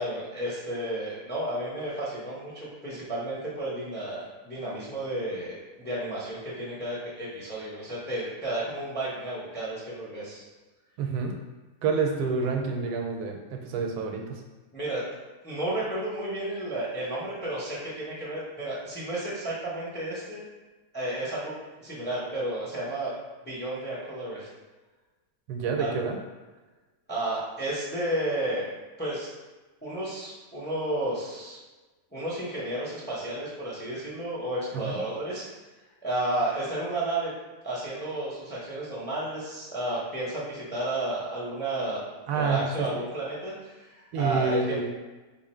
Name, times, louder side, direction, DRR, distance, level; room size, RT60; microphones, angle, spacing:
voice 1, 0.0-10.4 14.7-15.0 15.4-20.4 20.9-21.5 21.8-23.1 23.4-24.5 25.8-26.0 27.1-28.6 29.0-29.3 29.8-31.6 32.1-35.5 36.0-37.3 37.6-42.0 42.3-44.8, right 1 dB, 10° left, -7 dB, 0.5 m, -32 dB
voice 2, 11.0-11.4 11.8-14.4 25.5-26.2 34.7-35.0 42.3-43.0 44.1-44.9, right 4 dB, 80° right, 2 dB, 1.1 m, -28 dB
2.9 x 2.5 x 4.2 m, 1.2 s
omnidirectional pair, 1.7 m